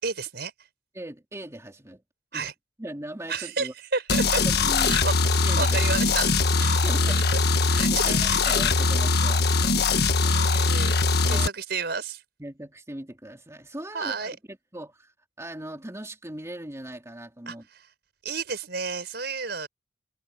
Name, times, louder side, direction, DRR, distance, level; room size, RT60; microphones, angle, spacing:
voice 1, 0.0-0.5 2.3-2.5 3.3-4.4 4.8-6.3 6.6-6.8 7.3-7.4 7.7-8.0 8.3-8.8 10.2-12.2 13.9-14.4 17.5-17.9 18.2-19.7, right 4 dB, 60° right, 5.8 m, -32 dB
voice 2, 0.9-2.0 2.3-2.5 2.8-3.7 4.4-5.0 5.4-5.8 6.8-7.3 7.6-10.3 11.2-11.5 12.4-15.1 15.4-17.7, right 1 dB, 15° right, 3.0 m, -39 dB
sound 1, 4.1-11.5, left 3 dB, 60° left, 1.5 m, -22 dB
head